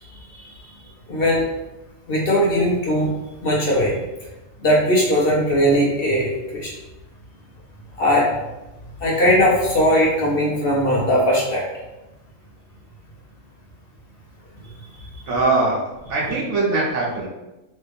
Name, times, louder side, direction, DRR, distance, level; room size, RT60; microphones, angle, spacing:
voice 1, 1.1-1.4 2.1-3.1 3.4-3.9 4.6-6.7 8.0-8.3 9.0-11.6, equal, 50° left, -3 dB, 0.9 m, -19 dB
voice 2, 15.3-15.8 16.1-17.3, right 3 dB, 65° right, -3 dB, 1.1 m, -21 dB
3.1 x 2.7 x 3.4 m, 1.0 s
omnidirectional pair, 1.4 m